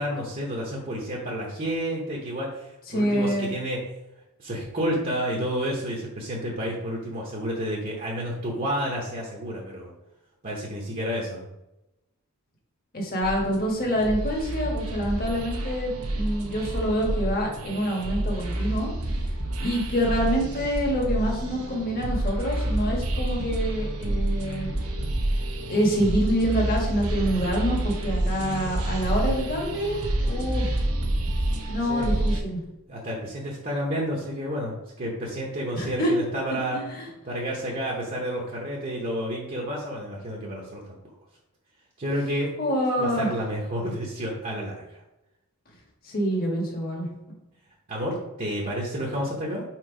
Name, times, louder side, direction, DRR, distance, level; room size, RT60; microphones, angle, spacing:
voice 1, 0.0-3.8 4.4-9.9 10.4-11.5 30.2-30.6 31.9-32.1 32.9-36.8 37.2-40.8 42.0-42.5 43.0-45.0 47.9-49.6, equal, 40° right, -3 dB, 1.0 m, -30 dB
voice 2, 2.9-3.5 12.9-15.9 16.1-18.9 19.6-24.7 25.7-30.7 31.7-32.6 35.8-36.1 36.7-37.1 42.6-43.3 46.0-47.1, equal, 45° left, -2 dB, 1.5 m, -26 dB
sound 1, 13.2-32.4, right 1 dB, 80° right, 1.0 m, -28 dB
4.6 x 4.3 x 5.0 m, 0.94 s
head